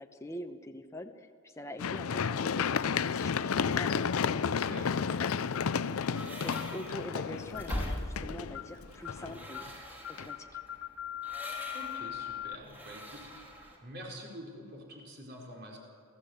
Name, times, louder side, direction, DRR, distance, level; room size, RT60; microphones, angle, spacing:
voice 1, 0.0-5.3 5.7-9.7 10.1-10.6, left 1 dB, 15° left, 5 dB, 0.9 m, -45 dB
Run, 1.8-9.7 10.2-10.3, left 6 dB, 80° left, 0.5 m, -32 dB
sound 1, 5.5-5.8 6.5-6.8 7.5-7.8 8.5-8.8 9.0-9.3 9.5-9.8 10.0-12.5, left 11 dB, 55° left, 0.9 m, -41 dB
sound 2, 6.1-13.8, equal, 10° right, 3.0 m, -43 dB
voice 2, 11.7-15.8, equal, 50° right, -1 dB, 4.9 m, -47 dB
28.0 x 15.0 x 8.2 m, 2.3 s
head